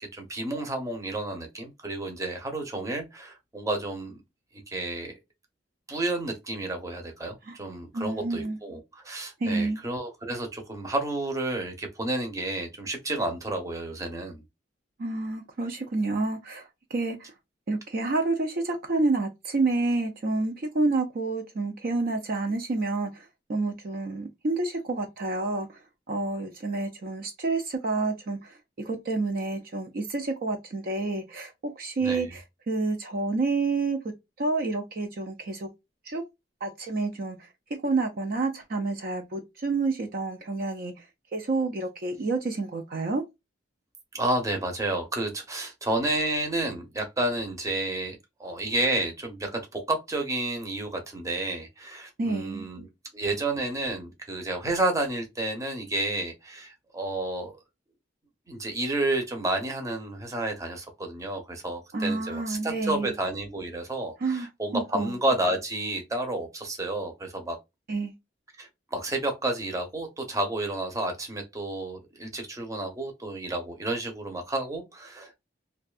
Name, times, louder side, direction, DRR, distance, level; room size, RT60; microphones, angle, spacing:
voice 1, 0.1-4.2 4.7-5.1 5.9-14.4 32.0-32.4 44.1-57.6 58.5-67.6 68.6-75.4, right 2 dB, 20° right, 0.7 m, -31 dB
voice 2, 7.9-8.6 9.4-9.8 15.0-17.2 17.7-23.1 23.5-25.7 26.1-28.5 28.9-34.0 34.4-35.7 36.1-36.2 36.6-37.4 37.8-40.9 41.3-43.2 52.2-52.6 61.9-63.1 64.2-64.5 64.7-65.1 67.9-68.1, right 3 dB, 55° right, 0.5 m, -29 dB
2.5 x 2.3 x 2.3 m
head